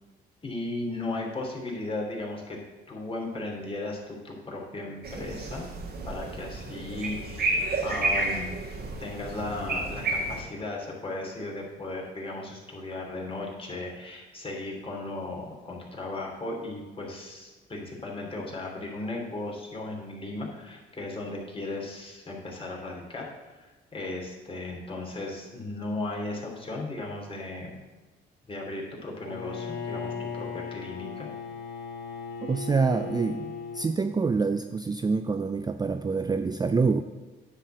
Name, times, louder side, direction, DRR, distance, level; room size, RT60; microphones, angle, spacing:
voice 1, 0.4-2.6 2.9-5.7 6.1-8.6 9.0-27.8 28.5-31.3, left 2 dB, 25° left, -2 dB, 2.8 m, -36 dB
sound 1, 5.0-10.4, right 2 dB, 55° right, 1.7 m, -31 dB
Bowed string instrument, 29.2-34.0, left 6 dB, 65° left, 2.3 m, -37 dB
voice 2, 32.4-37.0, right 4 dB, 20° right, 9 dB, 0.4 m, -26 dB
9.9 x 4.1 x 7.5 m, 1.2 s
cardioid pair, 90°, 20 cm